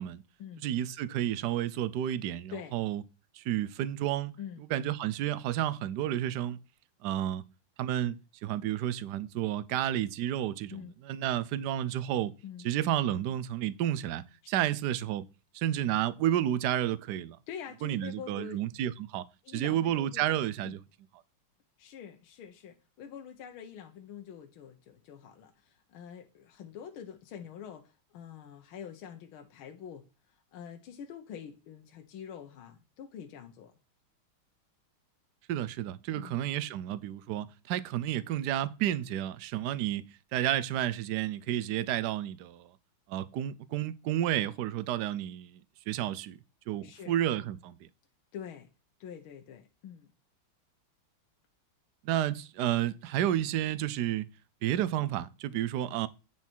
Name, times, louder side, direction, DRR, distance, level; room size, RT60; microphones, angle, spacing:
voice 1, 0.6-3.0 3.3-4.4 4.7-6.6 7.0-7.4 7.8-12.3 12.6-15.2 15.5-17.4 17.8-20.8 35.5-42.7 43.1-46.4 46.7-47.9 52.0-54.3 54.6-56.1, right 12 dB, 70° right, 1.0 m, -31 dB
voice 2, 17.5-18.7 19.4-20.2 20.6-20.8 21.8-33.7 36.2-36.4 46.8-47.1 48.3-48.7 49.0-50.1, left 8 dB, 80° left, 1.7 m, -45 dB
9.3 x 6.2 x 4.5 m
omnidirectional pair, 2.3 m